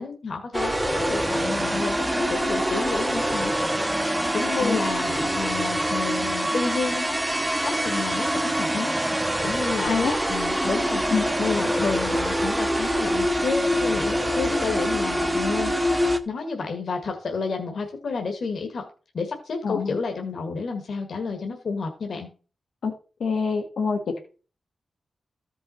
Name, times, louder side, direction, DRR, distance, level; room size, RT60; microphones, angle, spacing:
voice 1, 0.0-3.9 4.3-7.2 7.6-9.9 10.3-11.0 11.4-15.7 16.2-18.8 19.1-22.3, left 4 dB, 60° left, 3 dB, 1.5 m, -30 dB
sound 1, 0.5-16.2, equal, 10° right, 0.8 m, -25 dB
voice 2, 9.8-10.2 11.1-11.2 19.6-20.0 22.8-22.9 23.2-24.2, left 5 dB, 85° left, 2 dB, 1.5 m, -25 dB
14.0 x 5.5 x 4.3 m, 0.37 s
wide cardioid pair, 175°, 0 cm